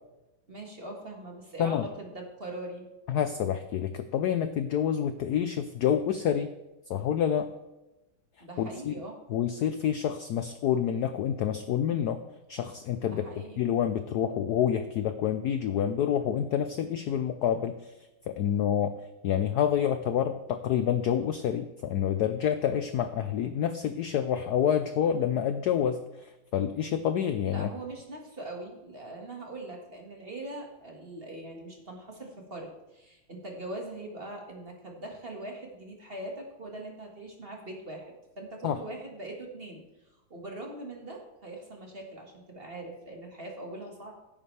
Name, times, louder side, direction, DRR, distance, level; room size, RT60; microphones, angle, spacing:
voice 1, 0.5-2.8 8.4-9.2 13.0-13.6 27.4-39.9 40.3-44.1, right 2 dB, 30° right, 0 dB, 1.7 m, -42 dB
voice 2, 3.1-6.5 6.9-7.5 8.6-8.9 9.3-12.2 12.5-13.2 13.6-17.9 18.3-18.9 19.2-27.7 38.6-38.8, left 9 dB, 75° left, 9 dB, 0.9 m, -28 dB
16.0 x 8.7 x 3.3 m, 0.99 s
omnidirectional pair, 2.3 m